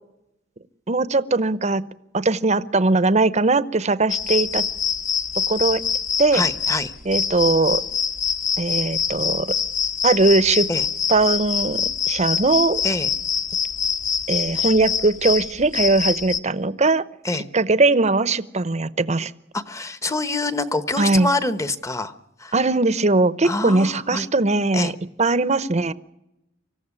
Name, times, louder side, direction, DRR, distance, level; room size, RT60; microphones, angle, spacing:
voice 1, 0.9-1.8 2.1-4.6 5.5-5.8 6.2-6.4 7.1-7.8 8.6-9.5 10.0-10.7 11.1-12.8 14.3-17.0 17.5-19.3 21.0-21.3 22.5-24.9 25.2-25.9, right 3 dB, 35° right, 15 dB, 0.8 m, -20 dB
sound 1, 4.1-16.4, left 7 dB, 40° left, 1.2 m, -25 dB
voice 2, 6.3-6.9 10.7-10.8 12.8-13.1 17.2-17.5 19.5-22.1 22.4-22.6 23.4-24.3 24.7-24.9, left 2 dB, 15° left, 12 dB, 1.0 m, -26 dB
25.0 x 15.0 x 9.8 m, 0.90 s
head